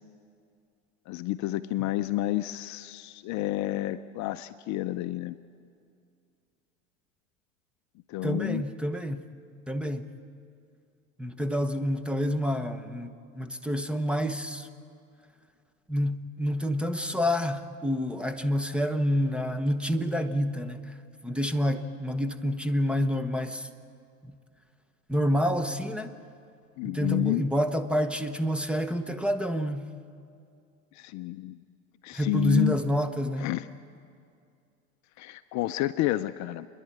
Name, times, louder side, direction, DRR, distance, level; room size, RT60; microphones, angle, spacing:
voice 1, 1.1-5.4 8.1-8.6 26.8-27.5 31.0-31.6 32.0-32.8 33.4-33.7 35.2-36.7, left 16 dB, 45° left, 11 dB, 0.6 m, -30 dB
voice 2, 8.2-9.2 9.7-10.1 11.2-14.7 15.9-20.9 21.2-23.7 24.3-24.4 25.1-26.1 26.8-29.9 32.1-33.5, equal, 5° right, 9 dB, 1.0 m, -28 dB
29.5 x 11.0 x 8.8 m, 2.4 s
hypercardioid pair, 100°, 40 cm